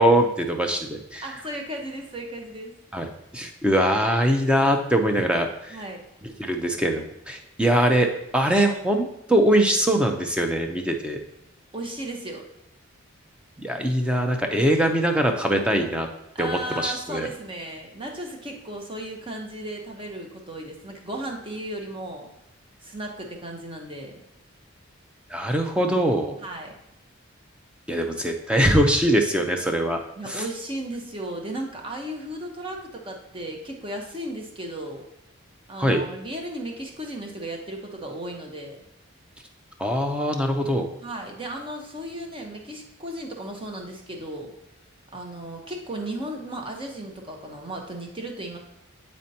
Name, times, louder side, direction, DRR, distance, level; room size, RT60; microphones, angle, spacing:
voice 1, 0.0-1.2 2.9-3.1 3.3-5.8 6.4-11.2 13.6-16.1 16.4-17.3 25.3-26.4 27.9-30.4 35.8-36.0 39.8-40.9, right 1 dB, 5° right, 4 dB, 0.6 m, -22 dB
voice 2, 1.2-2.7 5.7-6.0 11.7-12.4 16.3-22.3 22.8-24.2 26.4-26.7 30.2-35.0 35.7-38.8 41.0-44.5 45.1-48.6, right 1 dB, 25° right, 1 dB, 0.9 m, -35 dB
8.9 x 4.3 x 2.8 m, 0.88 s
head